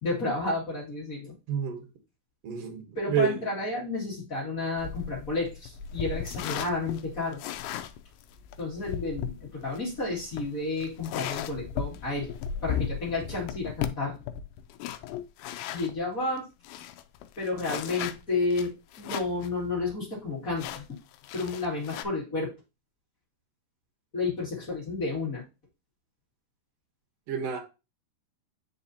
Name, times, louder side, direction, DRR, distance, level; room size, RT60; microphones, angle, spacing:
voice 1, 0.0-1.3 2.9-7.5 8.6-12.4 12.6-14.2 15.7-16.4 17.4-21.0 21.3-22.5 24.1-25.4, left 3 dB, 30° left, 1.7 m, -31 dB
voice 2, 1.5-1.8 2.4-3.3 27.3-27.6, right 7 dB, 85° right, 1.4 m, -29 dB
sound 1, 4.8-16.0 16.4-16.5 16.6-19.5 19.8-19.9 20.6-22.0, left 9 dB, 85° left, 2.1 m, -36 dB
9.6 x 4.1 x 2.8 m
omnidirectional pair, 4.8 m